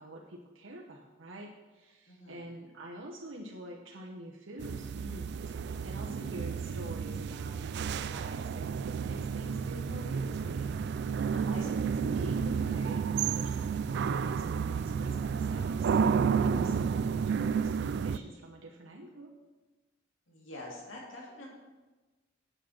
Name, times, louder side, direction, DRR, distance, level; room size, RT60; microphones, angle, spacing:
voice 1, 0.0-11.8 12.1-15.9 16.3-19.3, right 1 dB, 75° right, -2 dB, 0.9 m, -46 dB
voice 2, 2.1-2.4 11.3-11.7 20.3-21.5, left 1 dB, 80° left, -2 dB, 2.4 m, -46 dB
sound 1, 4.6-18.2, right 6 dB, 55° right, 0.3 m, -31 dB
8.0 x 6.1 x 6.4 m, 1.2 s
head